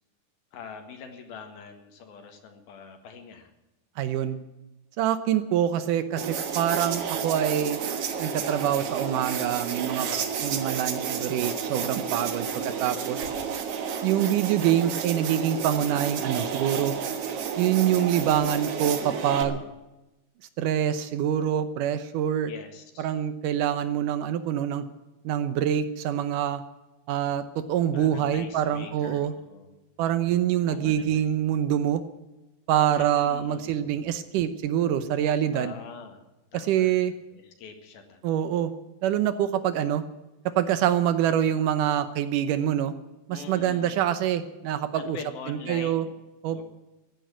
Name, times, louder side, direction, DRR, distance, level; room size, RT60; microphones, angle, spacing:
voice 1, 0.5-3.5 10.1-10.6 12.4-12.8 19.3-19.7 22.5-23.1 27.9-29.8 30.7-31.4 32.9-33.9 35.5-36.2 36.5-37.0 37.3-38.3 43.3-44.0 44.9-46.1 46.5-46.6, left 5 dB, 70° left, 6 dB, 3.5 m, -43 dB
voice 2, 4.0-4.4 5.0-7.8 8.2-10.1 10.4-13.2 14.0-17.0 17.6-19.6 20.6-22.5 23.0-24.8 25.3-26.6 27.1-29.3 30.0-32.0 32.7-35.7 36.5-37.1 38.2-38.7 39.0-40.0 40.6-42.9 43.3-45.2 45.5-46.1 46.4-46.6, right 10 dB, 80° right, 12 dB, 1.9 m, -25 dB
sound 1, 6.2-19.4, right 7 dB, 65° right, 1.5 m, -31 dB
15.0 x 10.0 x 9.2 m, 1.0 s
omnidirectional pair, 4.8 m